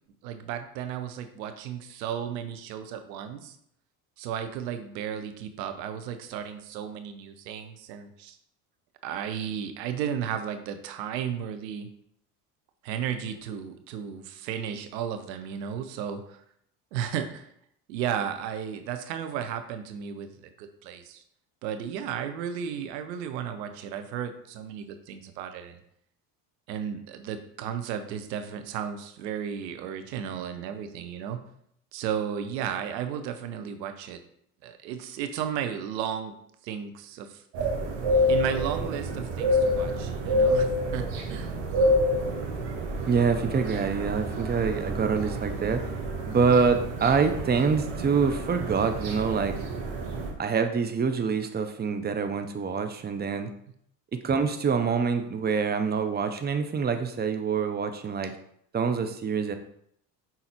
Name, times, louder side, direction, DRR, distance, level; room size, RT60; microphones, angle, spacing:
voice 1, 0.2-3.6 4.2-8.4 9.0-11.9 12.8-16.4 16.9-17.5 17.9-21.2 21.6-25.8 26.7-31.4 31.9-34.2 34.6-36.3 36.6-37.7 38.3-41.5, right 8 dB, 85° right, 8 dB, 0.9 m, -34 dB
sound 1, 37.5-50.3, equal, 65° right, 1.8 m, -28 dB
voice 2, 43.1-45.8 46.3-49.5 50.4-53.5 54.1-58.3 58.7-59.5, right 5 dB, 20° right, 7 dB, 0.7 m, -26 dB
5.8 x 3.9 x 4.3 m, 0.70 s
hypercardioid pair, 75°, 48 cm